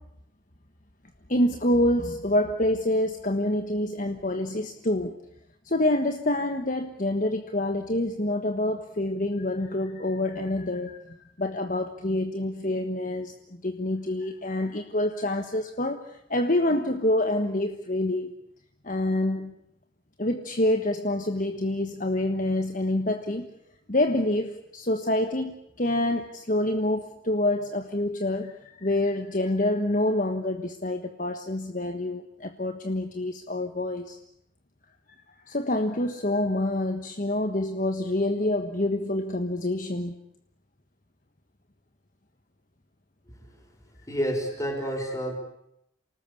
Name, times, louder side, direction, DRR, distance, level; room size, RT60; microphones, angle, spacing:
voice 1, 1.3-5.2 5.6-18.3 18.8-19.5 20.2-23.5 23.9-34.2 35.1-35.2 35.5-40.1, left 1 dB, 40° left, 6 dB, 1.4 m, -27 dB
voice 2, 43.3-43.6 44.1-45.4, equal, 15° left, 3 dB, 5.6 m, -30 dB
28.5 x 19.0 x 8.5 m, 0.80 s
head